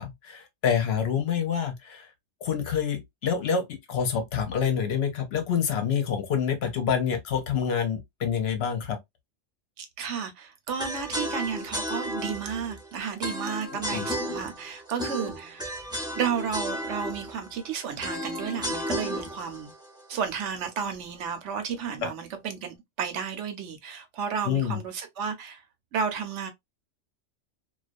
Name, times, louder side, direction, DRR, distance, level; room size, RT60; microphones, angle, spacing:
voice 1, 0.0-2.1 2.4-9.0 13.7-14.1 22.0-22.1 24.4-24.8, left 7 dB, 65° left, 0.7 m, -27 dB
voice 2, 9.8-15.7 16.1-19.7 20.1-25.6 25.9-26.5, right 7 dB, 75° right, 0.9 m, -32 dB
sound 1, 10.8-20.9, equal, 5° right, 0.5 m, -34 dB
2.3 x 2.2 x 2.4 m
omnidirectional pair, 1.3 m